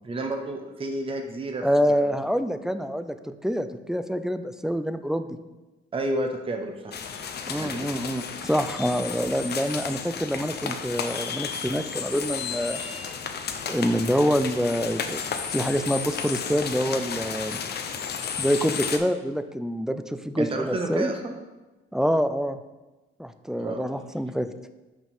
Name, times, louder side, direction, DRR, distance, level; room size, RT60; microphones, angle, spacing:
voice 1, 0.0-2.2 5.9-7.0 7.5-7.9 20.4-21.4 23.6-23.8, right 2 dB, 25° right, 3 dB, 0.8 m, -31 dB
voice 2, 1.6-5.4 7.5-12.8 13.7-15.2 15.5-17.6 18.4-21.1 21.9-22.6 23.2-24.5, equal, 5° right, 10 dB, 0.4 m, -26 dB
sound 1, 6.9-19.0, left 6 dB, 55° left, 0.7 m, -33 dB
5.9 x 4.5 x 5.4 m, 1.1 s
cardioid pair, 90°, 20 cm